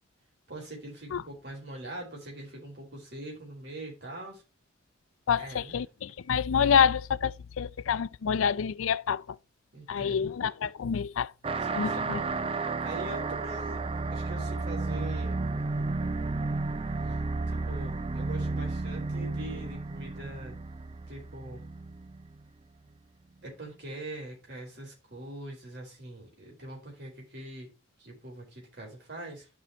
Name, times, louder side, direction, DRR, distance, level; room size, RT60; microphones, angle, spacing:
voice 1, 0.5-4.4 5.4-5.8 9.7-10.3 11.6-12.2 12.5-15.4 17.1-17.2 17.5-20.6 21.1-21.6 23.4-27.7 28.0-29.5, right 1 dB, 55° right, 4.2 m, -43 dB
voice 2, 5.3-9.2 9.9-11.3 11.7-12.2, left 7 dB, 80° left, 0.4 m, -27 dB
sound 1, 11.4-22.4, right 3 dB, 25° right, 0.4 m, -32 dB
12.0 x 5.6 x 2.9 m
head